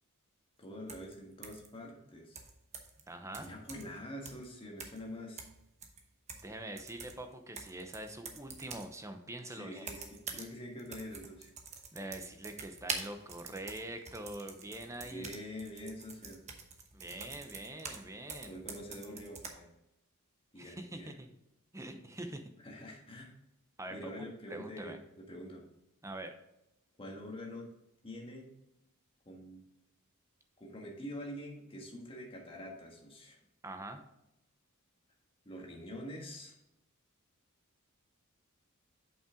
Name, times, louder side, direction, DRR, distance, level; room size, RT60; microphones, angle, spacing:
voice 1, 0.6-2.4 3.3-5.5 9.5-11.5 15.0-16.4 18.4-19.7 20.5-21.1 22.6-23.3 23.9-25.0 25.3-25.6 27.0-27.7 28.0-28.5 29.2-29.6 30.6-33.4 35.4-36.5, equal, 25° left, -1 dB, 1.6 m, -45 dB
sound 1, 0.9-1.1 1.4-1.7 2.4-3.0 3.3-4.0 4.3-4.5 4.8-5.1 5.4-6.5 6.8-8.9 9.8-10.5 10.8-18.0 18.3-19.5, right 5 dB, 30° right, 1.0 m, -45 dB
voice 2, 3.1-3.5 6.4-9.9 11.9-15.3 16.9-18.6 20.6-21.3 21.7-22.5 23.8-25.0 26.0-26.3 33.6-34.0, right 1 dB, 15° right, 6 dB, 0.7 m, -44 dB
7.5 x 5.7 x 3.7 m, 0.86 s
head